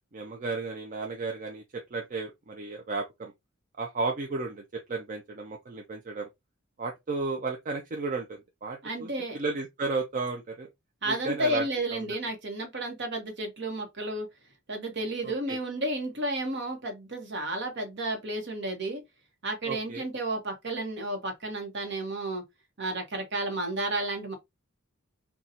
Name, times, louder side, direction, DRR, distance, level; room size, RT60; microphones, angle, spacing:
voice 1, 0.1-1.6 1.9-3.3 3.8-6.3 6.8-10.7 11.1-12.1 15.5-15.6 19.7-20.0, right 3 dB, 35° right, 0.5 m, -33 dB
voice 2, 8.8-9.4 11.0-14.3 14.7-19.0 19.4-22.4 22.8-24.4, right 1 dB, 55° right, 1.0 m, -32 dB
4.1 x 2.3 x 2.5 m
head